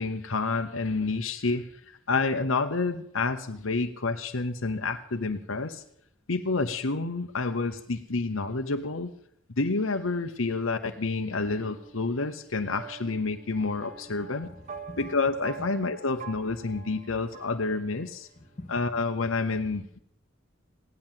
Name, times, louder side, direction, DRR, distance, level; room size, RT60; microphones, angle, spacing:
voice 1, 0.0-5.8 6.3-9.1 9.6-14.5 15.0-18.3 18.7-20.0, left 3 dB, 80° left, 5 dB, 1.0 m, -29 dB
sound 1, 11.3-18.3, right 5 dB, 40° right, 1.1 m, -46 dB
voice 2, 14.1-15.2 15.6-15.9 18.4-18.8, left 1 dB, 35° left, 6 dB, 2.3 m, -46 dB
16.5 x 11.0 x 7.5 m, 0.71 s
head